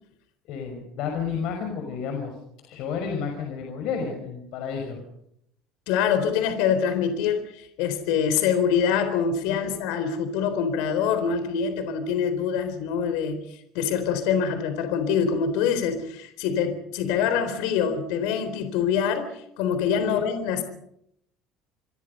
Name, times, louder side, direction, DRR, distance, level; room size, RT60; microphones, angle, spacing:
voice 1, 0.4-2.4 2.6-5.0 9.5-9.8 20.0-20.2, left 6 dB, 60° left, 3 dB, 5.9 m, -31 dB
voice 2, 5.9-13.4 13.7-20.6, left 7 dB, 80° left, 9 dB, 4.0 m, -25 dB
28.0 x 23.0 x 5.6 m, 0.75 s
cardioid pair, 155°, 0 cm